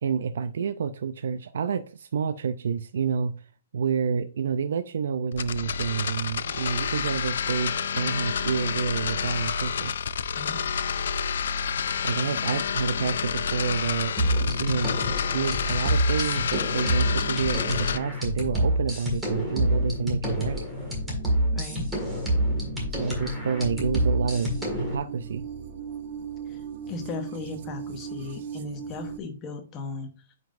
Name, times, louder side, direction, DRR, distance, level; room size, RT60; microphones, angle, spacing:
voice 1, 0.0-3.5 3.7-10.0 12.0-14.2 14.6-14.9 15.3-20.7 22.9-25.5, right 6 dB, 65° right, 0.4 m, -29 dB
sound 1, 5.3-18.0, left 7 dB, 65° left, 0.4 m, -29 dB
sound 2, 14.2-24.9, equal, 5° right, 1.8 m, -27 dB
sound 3, 20.7-29.2, right 7 dB, 45° right, 0.8 m, -39 dB
voice 2, 21.5-21.9 26.5-26.6 26.9-30.4, left 3 dB, 20° left, 0.9 m, -37 dB
9.2 x 5.2 x 2.5 m
hypercardioid pair, 170°, 0 cm